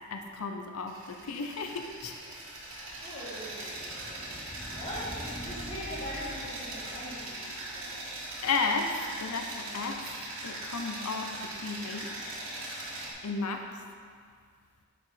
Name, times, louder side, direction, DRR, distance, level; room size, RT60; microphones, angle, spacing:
voice 1, 0.1-2.4 3.6-3.8 8.4-8.9 9.2-10.0 10.4-12.3 13.2-13.7, left 4 dB, 90° left, 5 dB, 0.6 m, -34 dB
sound 1, 0.9-13.1, right 2 dB, 60° right, 1.3 m, -41 dB
sound 2, 2.4-9.3, equal, 10° left, 0.5 m, -47 dB
voice 2, 3.0-8.4, equal, 25° left, -10 dB, 1.7 m, -42 dB
6.8 x 6.1 x 4.1 m, 2.1 s
head